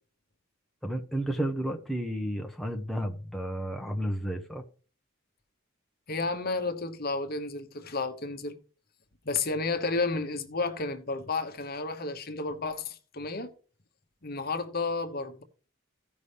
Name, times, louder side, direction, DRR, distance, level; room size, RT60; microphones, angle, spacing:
voice 1, 0.8-4.6, right 1 dB, ahead, 0.7 m, -32 dB
voice 2, 6.1-8.6 9.2-13.5 14.2-15.4, left 3 dB, 45° left, 1.0 m, -32 dB
15.5 x 5.4 x 3.4 m
head